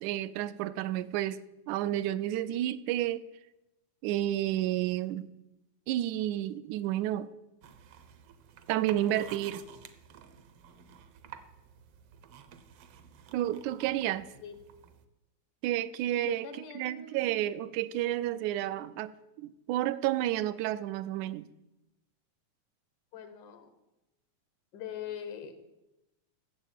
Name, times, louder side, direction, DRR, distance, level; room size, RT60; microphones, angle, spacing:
voice 1, 0.0-3.2 4.0-5.3 5.9-7.3 8.7-9.6 13.3-14.3 15.6-16.5 16.8-19.1 19.4-21.5, right 13 dB, 80° right, 16 dB, 2.0 m, -31 dB
sound 1, 7.6-15.0, right 8 dB, 65° right, 1.5 m, -52 dB
voice 2, 16.1-17.4 23.1-23.7 24.7-25.6, left 8 dB, 80° left, 9 dB, 2.7 m, -42 dB
13.5 x 7.3 x 9.1 m, 0.95 s
omnidirectional pair, 3.5 m